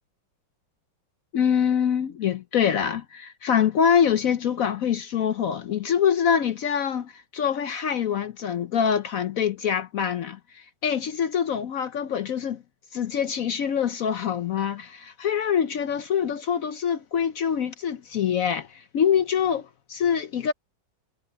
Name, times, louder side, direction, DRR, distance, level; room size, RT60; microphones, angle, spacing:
voice 1, 1.3-12.6 12.9-20.5, left 8 dB, 65° left, 0.8 m, -25 dB
omnidirectional pair, 2.1 m